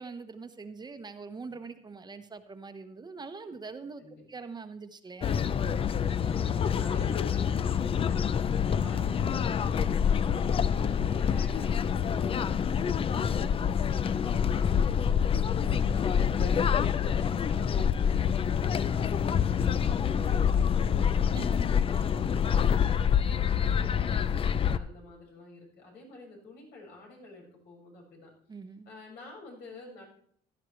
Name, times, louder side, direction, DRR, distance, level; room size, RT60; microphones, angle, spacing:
voice 1, 0.0-4.0 4.3-5.5 15.5-16.1 21.3-21.4 21.9-22.0 23.6-23.9 28.5-28.9, right 4 dB, 25° right, 8 dB, 1.0 m, -43 dB
sound 1, 5.2-24.8, left 7 dB, 35° left, 0.5 m, -26 dB
voice 2, 5.8-18.3 18.6-28.3 28.8-30.0, left 2 dB, 80° left, -1 dB, 5.9 m, -50 dB
15.5 x 11.5 x 3.2 m, 0.63 s
cardioid pair, 110°, 17 cm